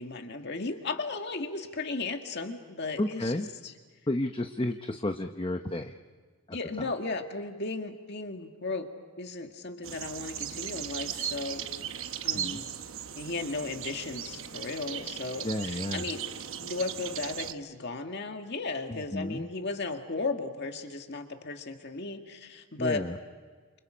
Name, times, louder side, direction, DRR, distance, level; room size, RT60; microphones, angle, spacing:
voice 1, 0.0-3.7 6.5-8.9 9.2-11.7 12.2-12.7 13.2-16.2 16.6-23.1, left 3 dB, 50° left, 5 dB, 2.0 m, -35 dB
voice 2, 3.0-3.5 4.1-6.0 6.8-6.9 12.3-12.6 15.4-16.0 18.9-19.5 22.8-23.2, left 1 dB, 25° left, 6 dB, 0.8 m, -32 dB
sound 1, 9.8-17.5, right 9 dB, 65° right, 1.0 m, -37 dB
29.5 x 28.5 x 5.1 m, 1.5 s
head